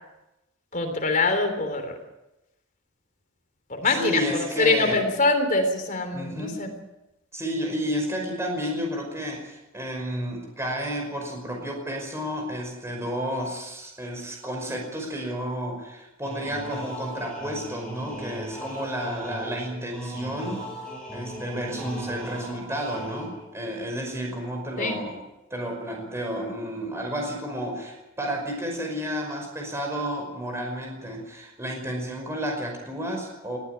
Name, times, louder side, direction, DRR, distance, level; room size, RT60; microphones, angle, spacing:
voice 1, 0.7-1.9 3.7-4.2 4.6-6.7 24.8-25.0, left 3 dB, 40° left, 5 dB, 3.5 m, -24 dB
voice 2, 3.8-5.0 6.1-6.7 7.3-20.6 21.1-25.2 25.5-33.6, equal, 15° right, 1 dB, 5.5 m, -31 dB
sound 1, 16.2-23.6, equal, 5° left, 7.8 m, -38 dB
19.5 x 15.0 x 9.8 m, 0.97 s
head